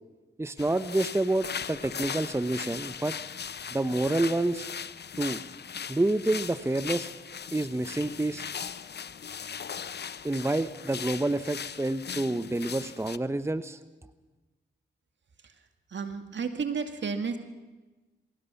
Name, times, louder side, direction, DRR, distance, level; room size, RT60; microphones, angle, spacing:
voice 1, 0.4-3.2 3.7-4.7 5.2-5.4 5.9-7.1 7.5-8.4 10.2-13.8, right 2 dB, 15° right, 12 dB, 0.9 m, -28 dB
sound 1, 0.6-13.2, left 7 dB, 55° left, 0.7 m, -39 dB
voice 2, 15.9-17.4, right 5 dB, 65° right, 7 dB, 2.2 m, -32 dB
22.5 x 17.0 x 7.1 m, 1.2 s
cardioid pair, 50°, 20 cm